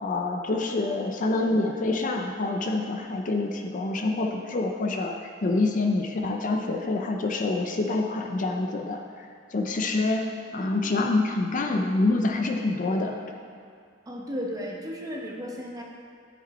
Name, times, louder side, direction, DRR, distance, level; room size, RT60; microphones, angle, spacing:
voice 1, 0.0-9.3 9.5-10.2 10.5-13.2, left 2 dB, 40° left, 3 dB, 0.5 m, -26 dB
voice 2, 14.1-15.8, equal, 20° right, -1 dB, 0.9 m, -34 dB
9.8 x 5.1 x 4.2 m, 2.4 s
head